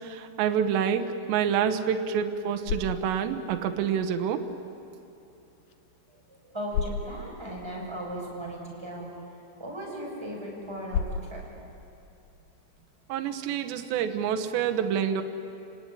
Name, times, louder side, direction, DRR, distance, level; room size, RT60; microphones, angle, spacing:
voice 1, 0.0-4.4 13.1-15.2, right 8 dB, 75° right, 6 dB, 3.2 m, -27 dB
sound 1, 2.3-13.4, left 6 dB, 75° left, 2.0 m, -39 dB
voice 2, 6.1-11.4 13.3-13.5, equal, 5° right, -3 dB, 6.1 m, -38 dB
30.0 x 18.5 x 10.0 m, 2.7 s
omnidirectional pair, 5.4 m